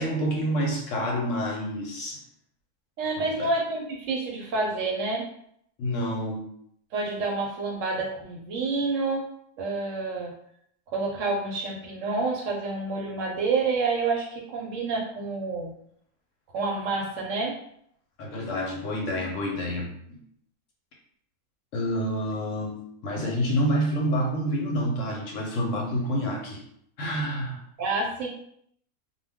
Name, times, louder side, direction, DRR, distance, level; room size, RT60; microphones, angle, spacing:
voice 1, 0.0-2.2 3.2-3.5 5.8-6.4 18.2-20.2 21.7-26.6 27.0-27.6, equal, 65° left, -1 dB, 0.9 m, -28 dB
voice 2, 3.0-5.3 6.9-9.3 9.6-10.3 10.9-15.7 16.5-17.6 27.8-28.3, right 3 dB, 70° right, -1 dB, 0.8 m, -28 dB
2.3 x 2.2 x 3.4 m, 0.70 s
omnidirectional pair, 1.5 m